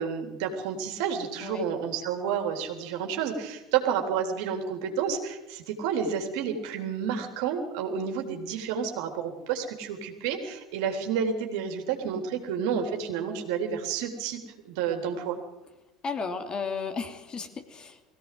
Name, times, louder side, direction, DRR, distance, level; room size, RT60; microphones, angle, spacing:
voice 1, 0.0-14.4 14.6-15.4, right 7 dB, 60° right, 4 dB, 3.6 m, -30 dB
voice 2, 16.0-18.0, left 5 dB, 30° left, 6 dB, 2.9 m, -34 dB
22.0 x 16.5 x 7.8 m, 0.97 s
figure-of-eight pair, 70°, 3 cm